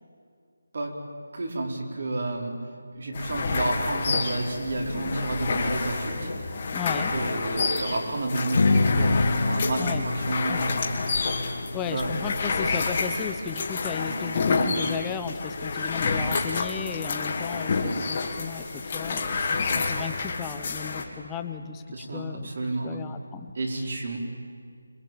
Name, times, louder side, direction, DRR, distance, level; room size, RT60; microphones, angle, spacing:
voice 1, 1.3-2.6 2.9-6.5 6.9-10.9 11.9-12.2 21.9-23.1 23.5-24.2, right 2 dB, 50° right, 1 dB, 4.7 m, -30 dB
sound 1, 3.1-21.0, left 4 dB, 30° left, 2.6 m, -29 dB
voice 2, 6.7-7.1 9.8-10.1 10.5-10.8 11.7-22.5 22.8-23.5, left 7 dB, 10° left, 8 dB, 0.8 m, -35 dB
Strum, 8.5-13.8, left 3 dB, 50° left, 1.6 m, -27 dB
26.5 x 21.5 x 9.0 m, 2.2 s
figure-of-eight pair, 170°, 0 cm